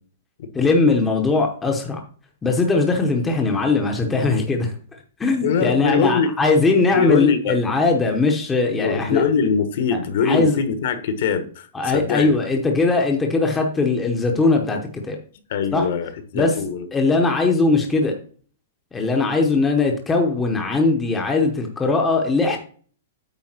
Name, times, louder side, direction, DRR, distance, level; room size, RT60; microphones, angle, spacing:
voice 1, 0.5-2.0 2.4-4.7 5.2-9.2 10.2-10.6 11.7-15.2 15.7-15.9 16.3-16.5 16.9-18.2 18.9-22.6, left 3 dB, 10° left, 2 dB, 0.8 m, -20 dB
voice 2, 5.4-6.3 6.9-7.6 8.8-12.4 15.5-16.9, left 6 dB, 50° left, 9 dB, 1.3 m, -22 dB
8.9 x 3.4 x 5.9 m, 0.43 s
hypercardioid pair, 170°, 0 cm